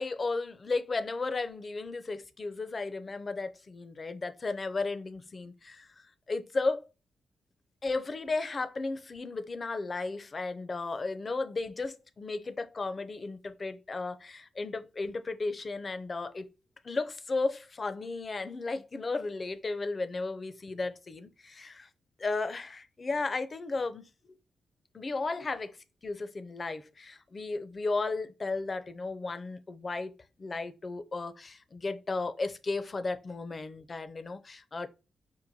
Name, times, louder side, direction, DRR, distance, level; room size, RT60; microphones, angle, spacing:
voice 1, 0.0-5.9 6.3-6.8 7.8-16.5 16.8-21.9 22.2-24.4 24.9-25.8 26.0-30.1 30.4-34.9, left 3 dB, 45° left, 0.5 m, -34 dB
4.5 x 2.2 x 2.7 m
supercardioid pair, 50°, 0 cm